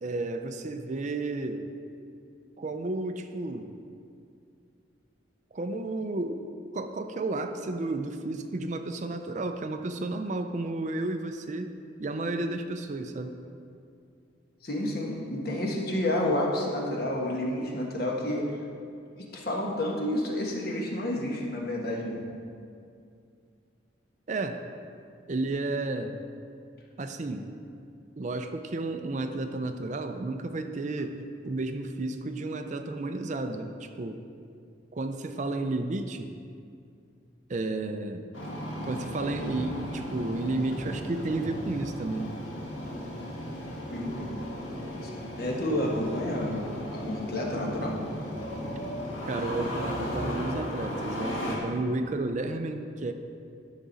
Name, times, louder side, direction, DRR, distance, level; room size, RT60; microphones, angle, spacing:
voice 1, 0.0-1.7 2.6-3.7 5.5-13.4 24.3-24.6 25.3-26.2 27.0-27.5 28.2-31.2 31.4-34.2 34.9-36.3 37.5-38.3 38.8-42.4 49.3-53.1, right 2 dB, 40° right, 7 dB, 0.4 m, -32 dB
voice 2, 14.6-18.6 19.2-22.2 43.9-44.3 45.0-45.1 45.4-48.1, left 1 dB, 50° left, -1 dB, 1.4 m, -30 dB
Engine starting, 38.3-51.6, equal, 90° left, 1.6 m, -36 dB
12.5 x 6.1 x 4.0 m, 2.4 s
head